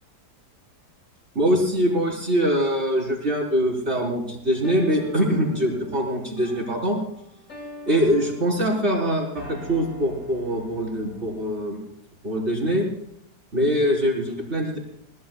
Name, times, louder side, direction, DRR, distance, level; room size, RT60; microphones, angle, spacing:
voice 1, 1.3-7.0 7.9-11.8 12.2-12.9 13.5-14.8, equal, 40° right, -2 dB, 4.6 m, -23 dB
sound 1, 4.6-11.6, left 3 dB, 50° left, 3.1 m, -42 dB
22.5 x 19.5 x 2.4 m, 0.76 s
omnidirectional pair, 1.8 m